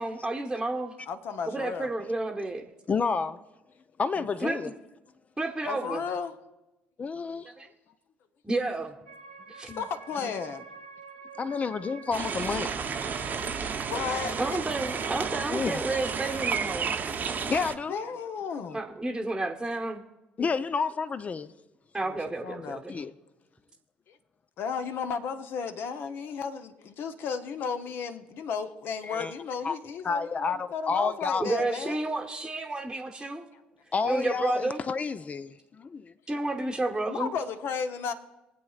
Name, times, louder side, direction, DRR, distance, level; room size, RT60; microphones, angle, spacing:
voice 1, 0.0-0.9 1.5-2.7 4.1-4.6 5.4-6.0 7.6-7.7 8.4-9.0 9.5-9.7 13.4-13.5 14.4-16.9 18.7-20.0 21.9-23.0 31.4-33.4 34.0-34.8 36.3-37.3, right 2 dB, 10° right, 1.0 m, -31 dB
voice 2, 1.1-1.9 5.7-6.3 9.7-10.6 13.7-14.6 17.9-18.8 22.0-22.2 22.4-22.8 24.1-24.2 24.6-32.0 37.1-38.1, left 6 dB, 55° left, 0.8 m, -34 dB
voice 3, 2.9-3.4 4.0-4.7 7.0-7.5 9.7-9.8 11.4-12.8 13.3-13.8 15.5-16.0 17.2-18.0 20.4-21.5 22.9-23.1 29.1-29.3 29.6-29.8 30.0-31.4 33.9-36.1, left 5 dB, 30° left, 0.4 m, -30 dB
sound 1, 9.1-16.7, right 5 dB, 85° right, 0.7 m, -47 dB
sound 2, 12.1-17.7, right 6 dB, 35° right, 0.8 m, -32 dB
23.5 x 8.0 x 2.4 m
figure-of-eight pair, 55°, 5 cm